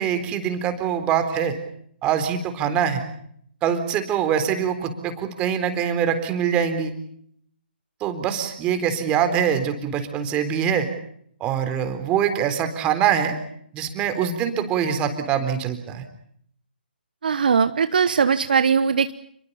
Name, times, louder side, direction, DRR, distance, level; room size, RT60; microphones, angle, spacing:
voice 1, 0.0-1.6 2.0-3.0 3.6-6.9 8.0-10.9 11.4-13.4 13.7-16.0, right 8 dB, 20° right, 8 dB, 3.9 m, -24 dB
voice 2, 17.2-19.1, right 6 dB, 55° right, 12 dB, 1.2 m, -20 dB
30.0 x 22.0 x 7.0 m, 0.68 s
figure-of-eight pair, 140°, 6 cm